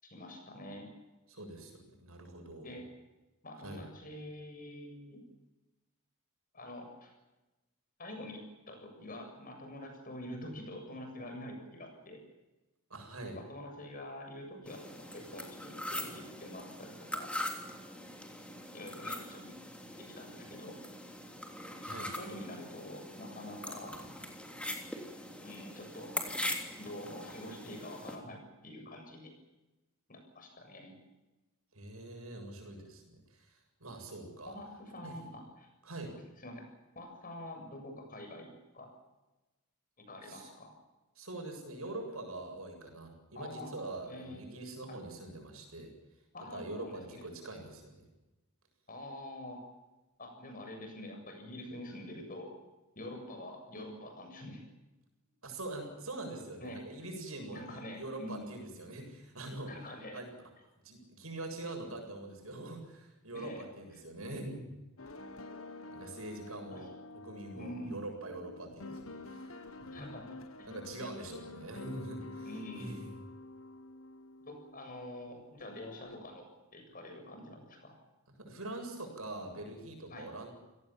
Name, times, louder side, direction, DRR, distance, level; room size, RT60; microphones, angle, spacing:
voice 1, 0.0-0.9 2.6-2.9 3.4-5.2 6.5-7.1 8.0-12.2 13.4-17.3 18.7-19.5 19.9-20.8 22.0-24.0 25.4-26.1 26.8-29.3 30.1-30.9 34.5-35.7 36.4-36.7 37.0-38.9 40.0-40.7 43.3-43.7 44.0-44.4 46.3-47.3 48.9-49.6 50.2-52.5 53.0-54.6 56.6-56.8 57.5-58.5 59.7-60.2 63.3-63.6 66.7-66.9 67.5-68.0 69.9-70.3 70.6-70.7 72.4-73.0 74.5-76.4 76.7-77.9 80.1-80.3, left 1 dB, 40° left, 4 dB, 7.4 m, -46 dB
voice 2, 1.3-2.7 3.6-3.8 12.9-13.4 21.8-22.1 31.7-34.6 35.0-35.2 35.8-36.1 40.2-40.5 41.2-45.9 46.5-48.1 55.4-59.7 60.1-60.3 60.8-64.7 65.9-66.9 67.1-70.0 70.7-73.1 78.4-80.5, right 2 dB, 75° right, 3 dB, 7.6 m, -44 dB
sound 1, 14.7-28.2, left 1 dB, 5° left, 3.3 m, -42 dB
sound 2, 65.0-75.3 75.6-76.2, left 2 dB, 70° left, 1.5 m, -48 dB
29.5 x 18.0 x 7.5 m, 1.1 s
head